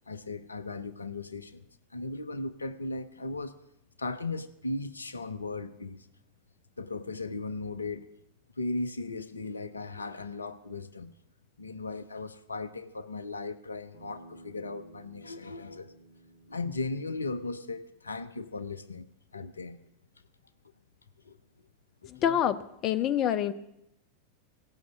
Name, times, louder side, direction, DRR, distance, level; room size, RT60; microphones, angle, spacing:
voice 1, 0.1-1.6 1.9-3.6 4.0-6.1 6.8-8.1 8.6-11.1 11.6-15.9 16.5-19.8 21.2-21.4 22.2-22.3, left 3 dB, 75° left, 13 dB, 0.6 m, -37 dB
Bass guitar, 13.9-18.2, right 1 dB, 70° right, 4.1 m, -54 dB
voice 2, 22.1-23.5, left 10 dB, 35° left, 11 dB, 0.6 m, -27 dB
17.0 x 6.2 x 8.2 m, 0.84 s
figure-of-eight pair, 90°, 0 cm